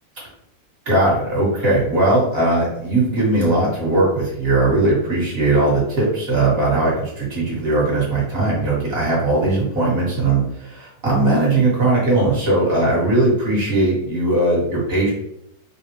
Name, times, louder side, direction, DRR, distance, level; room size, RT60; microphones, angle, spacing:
voice 1, 0.8-15.1, right 2 dB, 40° right, -6 dB, 1.5 m, -19 dB
3.6 x 2.3 x 2.9 m, 0.79 s
omnidirectional pair, 1.8 m